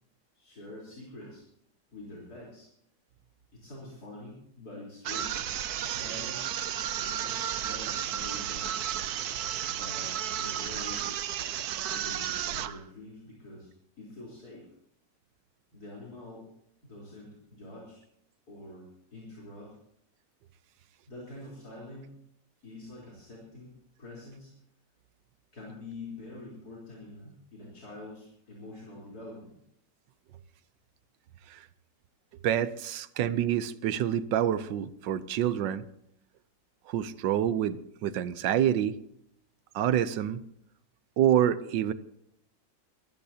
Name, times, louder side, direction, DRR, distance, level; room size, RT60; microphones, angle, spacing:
voice 1, 0.3-1.4 1.9-2.7 3.5-5.5 5.8-6.5 7.0-8.8 9.6-11.2 11.9-13.7 14.0-14.7 15.7-16.5 16.8-18.0 18.5-19.7 21.1-22.1 22.6-23.7 24.0-24.5 25.5-29.6, left 2 dB, 55° left, -5 dB, 4.3 m, -46 dB
sound 1, 5.0-12.8, right 10 dB, 65° right, 1.1 m, -33 dB
voice 2, 32.4-35.8 36.9-39.0 39.7-40.4 41.2-41.9, right 10 dB, 80° right, 14 dB, 1.4 m, -27 dB
23.5 x 15.0 x 2.8 m, 0.73 s
omnidirectional pair, 1.9 m